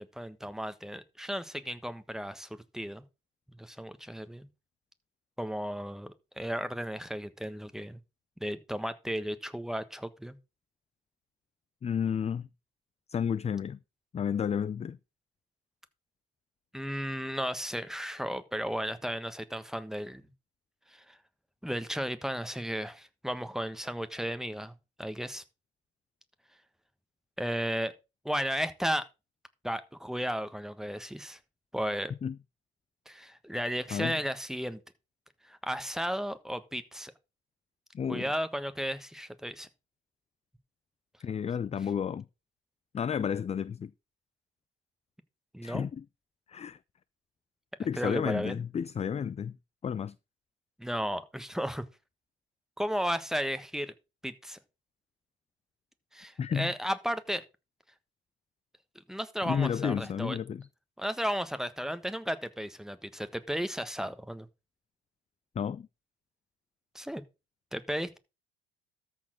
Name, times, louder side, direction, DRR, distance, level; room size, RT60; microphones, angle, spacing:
voice 1, 0.0-3.0 3.6-4.5 5.4-8.0 8.4-10.4 16.7-20.3 20.9-21.2 21.6-25.4 27.4-27.9 28.2-29.1 29.6-31.4 31.7-32.1 33.1-34.8 35.4-37.1 38.1-39.7 45.5-45.9 48.0-48.6 50.8-51.8 52.8-53.9 54.2-54.6 56.1-57.4 59.1-60.4 61.0-64.5 66.9-67.2 67.7-68.2, equal, ahead, 1.4 m, -34 dB
voice 2, 11.8-12.5 13.1-13.8 14.1-15.0 32.2-32.4 33.9-34.1 37.9-38.3 41.2-42.2 42.9-43.9 45.6-46.0 46.5-46.8 47.8-49.6 49.8-50.1 56.4-56.7 59.4-60.7 65.6-65.9, left 7 dB, 20° left, 0.4 m, -31 dB
13.5 x 4.5 x 6.1 m
hypercardioid pair, 65°, 30 cm